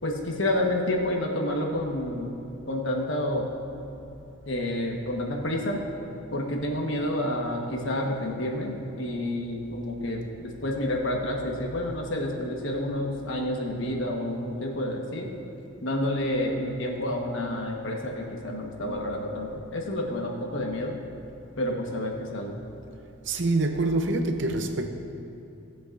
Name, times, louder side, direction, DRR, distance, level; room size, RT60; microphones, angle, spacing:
voice 1, 0.0-2.4 2.7-3.5 4.5-5.8 6.3-15.3 15.8-21.0 21.6-22.6, left 1 dB, 65° left, 0 dB, 1.3 m, -29 dB
voice 2, 23.2-24.9, right 2 dB, 55° right, 6 dB, 0.7 m, -26 dB
18.0 x 7.8 x 2.6 m, 2.8 s
head